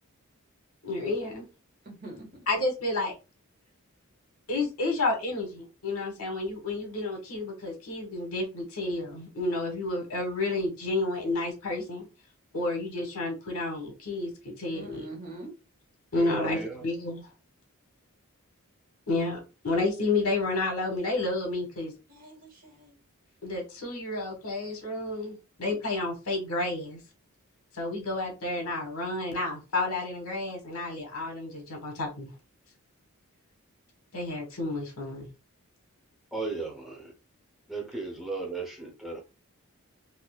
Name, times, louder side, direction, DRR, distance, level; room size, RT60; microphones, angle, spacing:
voice 1, 0.8-1.4 2.5-3.1 4.5-12.1 12.5-15.0 16.1-17.3 19.1-19.4 19.6-21.9 23.4-27.0 27.7-32.3 34.1-35.3, left 2 dB, 75° left, 1.5 m, -30 dB
voice 2, 1.8-2.3 14.7-15.5 22.1-23.0, right 2 dB, 40° right, 1.4 m, -43 dB
voice 3, 16.2-16.8 36.3-37.1 37.7-39.2, right 3 dB, ahead, 0.8 m, -35 dB
4.1 x 2.7 x 2.4 m
head